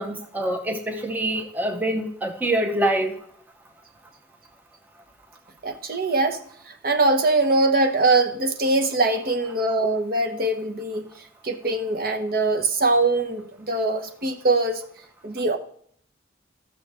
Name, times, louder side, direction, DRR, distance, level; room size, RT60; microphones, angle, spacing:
voice 1, 0.0-3.2, right 1 dB, 10° right, 0.6 m, -25 dB
voice 2, 5.6-6.4 6.8-11.1 11.4-14.8 15.2-15.6, right 2 dB, 50° right, 0.9 m, -22 dB
15.0 x 6.3 x 3.4 m
head